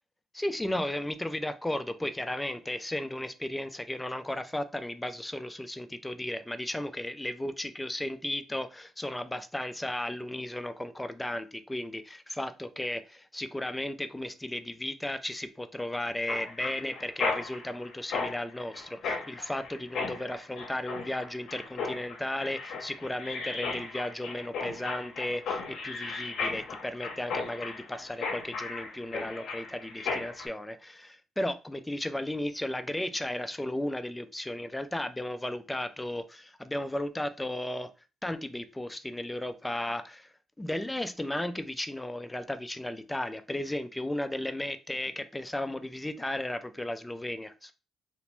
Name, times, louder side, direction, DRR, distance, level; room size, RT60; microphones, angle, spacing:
voice 1, 0.3-37.9 38.2-40.3 40.6-47.7, left 1 dB, 10° left, 0.3 m, -35 dB
Mechanisms, 16.3-30.5, left 4 dB, 75° left, 0.7 m, -36 dB
2.9 x 2.1 x 3.0 m
cardioid pair, 90°, 0 cm